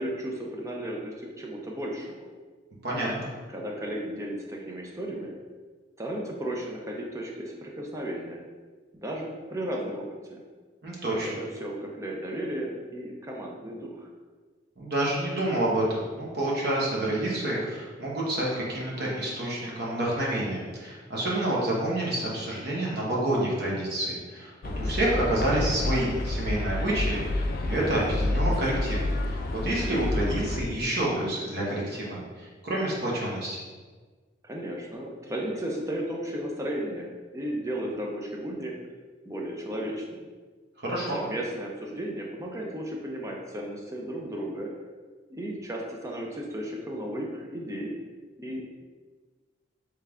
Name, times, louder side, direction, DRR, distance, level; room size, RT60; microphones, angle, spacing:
voice 1, 0.0-2.2 3.5-5.4 6.0-8.4 8.9-10.4 11.2-14.1 34.4-38.7 39.2-40.3 41.1-44.7 45.3-47.9 48.4-48.6, right 1 dB, 15° right, -1 dB, 0.5 m, -34 dB
voice 2, 2.8-3.3 10.8-11.4 14.8-29.0 29.2-33.6 40.8-41.2, right 1 dB, 60° right, -5 dB, 0.9 m, -28 dB
sound 1, 24.6-30.6, left 1 dB, 50° left, 0.4 m, -29 dB
3.4 x 3.2 x 3.6 m, 1.4 s
head